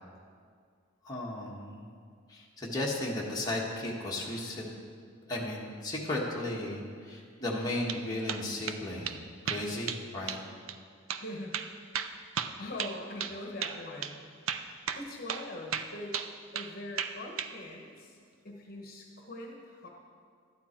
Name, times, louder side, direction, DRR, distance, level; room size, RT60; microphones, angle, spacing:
voice 1, 1.0-1.9 2.3-4.7 5.3-9.2 9.4-10.4, left 1 dB, 20° left, -4 dB, 1.4 m, -35 dB
sound 1, 7.6-8.0 8.3-8.8 9.1-9.2 9.5-10.0 10.3-10.4 10.7-10.8 11.1-11.2 11.5-13.4 13.6-13.8 14.0-14.1 14.5-15.0 15.3-15.5 15.7-16.7 17.0-17.5, right 8 dB, 90° right, 0.6 m, -34 dB
voice 2, 11.2-11.6 12.6-14.3 14.9-16.2 16.5-18.2 18.4-19.9, left 1 dB, 45° left, 0 dB, 1.2 m, -42 dB
13.0 x 9.4 x 4.5 m, 2.1 s
head